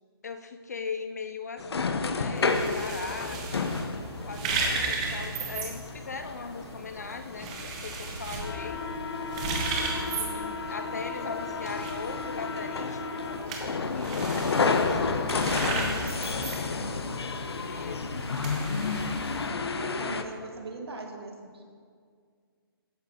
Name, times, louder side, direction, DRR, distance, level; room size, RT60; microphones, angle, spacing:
voice 1, 0.2-3.8 4.3-8.8 9.8-18.0 19.7-20.2 21.1-21.2, left 5 dB, 40° left, 8 dB, 0.4 m, -40 dB
sound 1, 1.6-20.2, left 4 dB, 85° left, 0.7 m, -31 dB
sound 2, 2.4-19.5, right 3 dB, 15° right, 0.7 m, -36 dB
voice 2, 19.8-21.8, right 3 dB, 80° right, 3 dB, 1.4 m, -41 dB
12.5 x 9.2 x 2.7 m, 2.1 s
hypercardioid pair, 170°, 13 cm